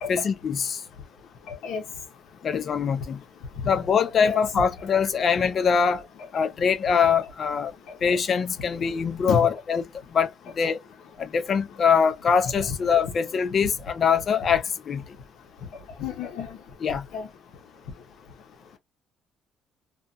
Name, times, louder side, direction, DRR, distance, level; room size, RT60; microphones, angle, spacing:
voice 1, 0.1-0.8 2.4-3.2 3.6-6.0 6.3-7.7 8.0-9.8 10.1-10.3 10.6-10.8 11.2-15.0 16.8-17.1, left 6 dB, 35° left, 0.4 m, -23 dB
voice 2, 1.5-1.8 4.2-4.4 9.3-9.5 16.0-16.5 17.1-17.3, left 6 dB, 70° left, 0.7 m, -30 dB
2.5 x 2.2 x 2.4 m
cardioid pair, 170°, 0 cm